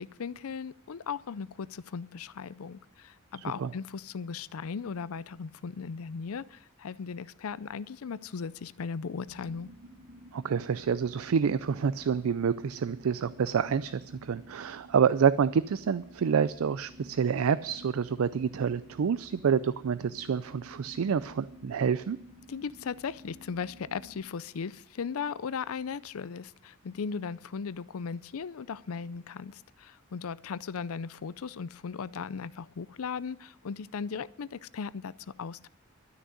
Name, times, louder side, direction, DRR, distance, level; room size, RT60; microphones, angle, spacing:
voice 1, 0.0-9.7 22.5-35.7, left 6 dB, 90° left, 19 dB, 0.5 m, -37 dB
sound 1, 9.3-24.3, equal, 50° right, 1.7 m, -52 dB
voice 2, 10.3-22.2, right 7 dB, 80° right, 16 dB, 0.4 m, -28 dB
12.5 x 6.4 x 9.4 m, 0.74 s
head